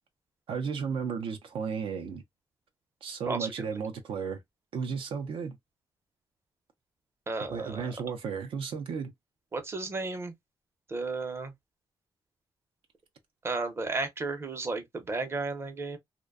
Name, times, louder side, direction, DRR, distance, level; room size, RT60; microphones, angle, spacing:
voice 1, 0.5-2.2 3.0-4.4 4.7-5.6 7.5-9.1, right 6 dB, 75° right, 0.5 m, -34 dB
voice 2, 7.3-7.9 9.5-10.3 10.9-11.5 13.4-16.0, right 3 dB, 25° right, 0.6 m, -33 dB
2.5 x 2.2 x 2.3 m
cardioid pair, 115°, 9 cm